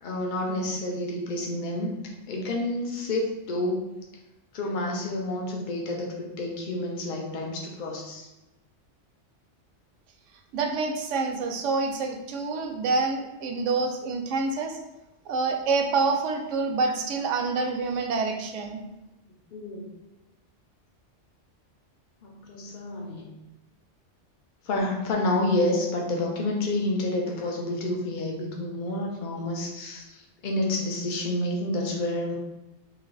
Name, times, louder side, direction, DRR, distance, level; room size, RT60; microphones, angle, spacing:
voice 1, 0.0-3.9 4.5-8.3 19.5-19.9 22.2-23.3 24.6-32.4, left 1 dB, 45° left, -1 dB, 0.8 m, -29 dB
voice 2, 10.5-14.8 15.3-18.8, right 4 dB, 80° right, 4 dB, 0.9 m, -27 dB
3.2 x 2.8 x 3.9 m, 1.0 s
omnidirectional pair, 1.2 m